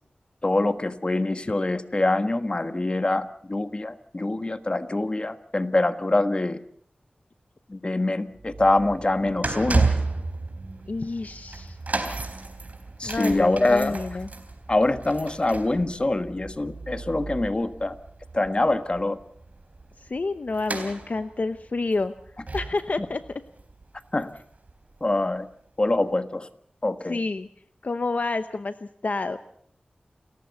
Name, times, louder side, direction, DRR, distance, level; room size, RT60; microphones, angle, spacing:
voice 1, 0.4-6.6 7.7-9.9 13.0-14.0 14.7-18.0 18.3-19.2 23.0-23.1 24.1-24.3 25.0-25.5 25.8-26.5 26.8-27.2, left 2 dB, 35° left, 10 dB, 1.4 m, -24 dB
sound 1, 8.3-24.7 25.0-25.2 26.0-26.1, right 3 dB, 55° right, 3.7 m, -33 dB
voice 2, 10.9-11.8 13.0-14.3 20.0-22.1 22.5-23.2 27.1-27.5 27.8-28.7 29.0-29.4, left 3 dB, 60° left, 10 dB, 0.8 m, -28 dB
29.0 x 14.5 x 7.0 m, 0.66 s
wide cardioid pair, 75°, 3 cm